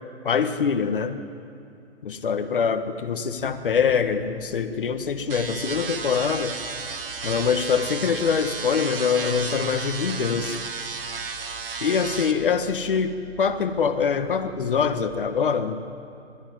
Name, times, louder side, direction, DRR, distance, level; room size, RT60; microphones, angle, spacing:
voice 1, 0.2-1.2 2.0-6.6 7.2-10.6 11.8-15.8, left 6 dB, 45° left, 8 dB, 1.5 m, -24 dB
sound 1, 3.3-15.2, left 1 dB, 10° right, 5.2 m, -47 dB
sound 2, 5.3-12.3, right 5 dB, 50° right, 2.0 m, -33 dB
29.0 x 14.5 x 9.6 m, 2.6 s
hypercardioid pair, 175°, 36 cm